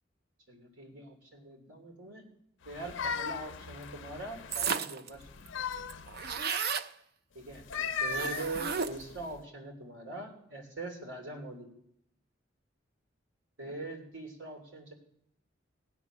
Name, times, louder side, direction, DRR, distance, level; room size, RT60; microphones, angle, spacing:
voice 1, 0.5-2.3 2.6-5.3 7.3-7.7 8.0-11.7 13.6-14.9, right 2 dB, 80° right, 2 dB, 3.2 m, -42 dB
sound 1, 2.7-4.7 5.2-6.4 7.5-9.4, left 5 dB, 75° left, 0.6 m, -37 dB
sound 2, 4.5-5.1 5.5-5.6 5.7-6.9 8.1-9.1, right 6 dB, 55° right, 0.5 m, -33 dB
16.5 x 9.1 x 6.2 m, 0.74 s
head